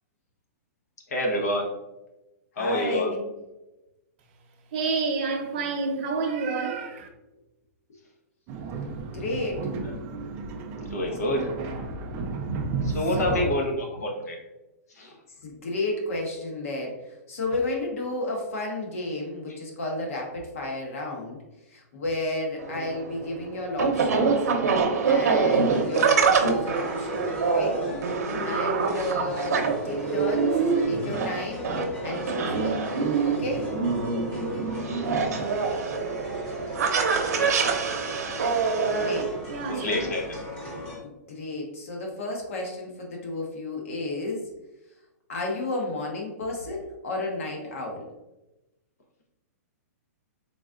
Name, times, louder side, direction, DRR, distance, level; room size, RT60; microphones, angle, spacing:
voice 1, 1.1-1.7 2.6-3.1 9.8-9.9 10.8-11.5 12.8-14.4 15.0-15.1 37.3-37.6 39.7-40.2, left 1 dB, 85° left, 1.1 m, -27 dB
voice 2, 2.6-3.3 9.0-9.7 13.0-13.5 15.4-21.4 21.7-24.4 25.0-27.8 28.4-30.5 30.9-31.7 32.0-32.9 33.2-33.7 38.9-39.3 39.7-40.0 41.0-44.5 45.3-48.1, left 2 dB, 55° left, 0.9 m, -32 dB
voice 3, 4.7-7.1 39.5-40.1, right 4 dB, 40° right, 0.7 m, -28 dB
sound 1, 8.5-13.5, right 3 dB, 20° right, 0.3 m, -33 dB
sound 2, 22.6-39.2, right 5 dB, 80° right, 0.7 m, -25 dB
sound 3, 25.5-41.0, left 1 dB, 15° left, 0.9 m, -38 dB
3.9 x 3.6 x 2.4 m
hypercardioid pair, 170°, 9 cm